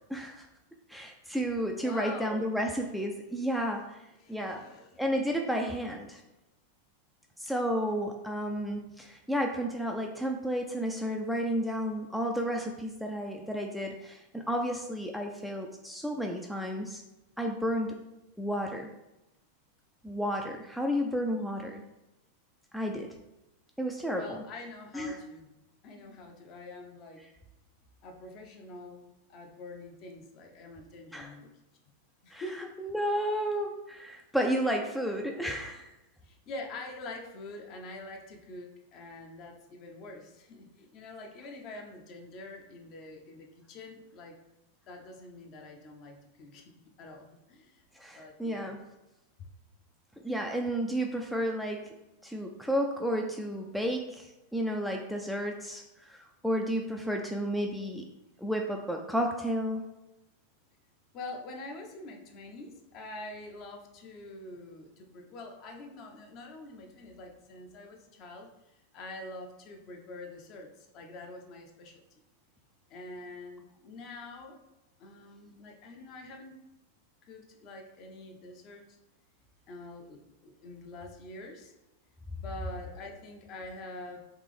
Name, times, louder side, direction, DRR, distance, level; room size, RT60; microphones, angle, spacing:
voice 1, 0.1-0.5 0.9-4.0 4.3-4.6 5.0-6.2 7.4-17.0 17.4-18.0 18.4-18.9 20.0-21.8 22.7-23.1 23.8-24.4 24.9-25.2 31.1-31.3 32.3-35.9 47.9-48.8 50.2-51.8 52.2-58.0 58.4-59.8, equal, ahead, 1 dB, 0.4 m, -32 dB
voice 2, 1.7-2.5 4.2-5.0 24.1-25.5 25.8-27.2 28.0-31.5 32.2-32.7 36.2-44.4 44.9-46.7 47.0-48.8 61.1-68.5 68.9-72.0 72.9-74.6 75.0-76.6 77.2-78.8 79.7-81.7 82.4-84.2, left 2 dB, 40° left, 2 dB, 0.7 m, -45 dB
3.5 x 3.2 x 3.3 m, 0.94 s
figure-of-eight pair, 90°, 0 cm